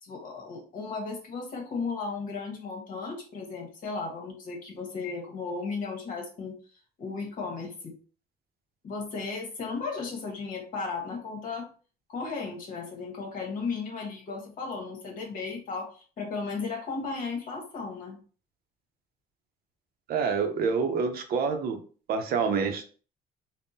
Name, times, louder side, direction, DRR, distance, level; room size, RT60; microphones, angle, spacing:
voice 1, 0.0-6.6 7.0-8.0 8.8-11.7 12.1-18.2, left 4 dB, 55° left, 1 dB, 1.1 m, -35 dB
voice 2, 20.1-21.8 22.1-22.9, right 5 dB, 65° right, 6 dB, 0.6 m, -27 dB
3.5 x 2.1 x 2.7 m, 0.39 s
cardioid pair, 110°, 17 cm